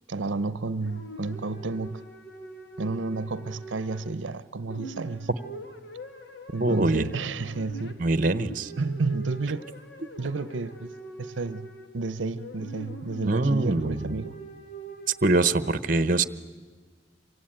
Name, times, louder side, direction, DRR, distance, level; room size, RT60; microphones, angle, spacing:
voice 1, 0.1-2.0 2.8-5.3 6.5-8.0 8.8-9.6 10.2-10.9 11.2-11.7 11.9-14.4, right 3 dB, 85° right, 0.7 m, -31 dB
sound 1, 0.8-4.4 4.7-15.7, right 2 dB, 65° left, 2.3 m, -44 dB
voice 2, 6.6-7.0 8.0-8.7 13.2-14.2 15.2-16.2, right 2 dB, 45° right, 1.0 m, -23 dB
26.5 x 24.0 x 8.9 m
head